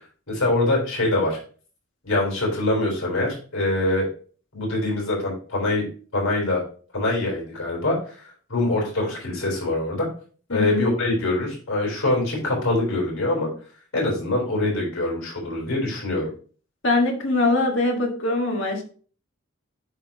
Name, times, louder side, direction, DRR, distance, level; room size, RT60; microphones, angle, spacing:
voice 1, 0.3-1.4 2.0-4.1 4.5-5.9 6.1-6.6 6.9-10.1 10.5-13.5 13.9-16.3, left 2 dB, 85° left, -1 dB, 3.8 m, -24 dB
voice 2, 10.5-10.9 16.8-18.8, left 2 dB, 65° left, 2 dB, 1.6 m, -22 dB
10.5 x 4.0 x 2.8 m, 0.41 s
head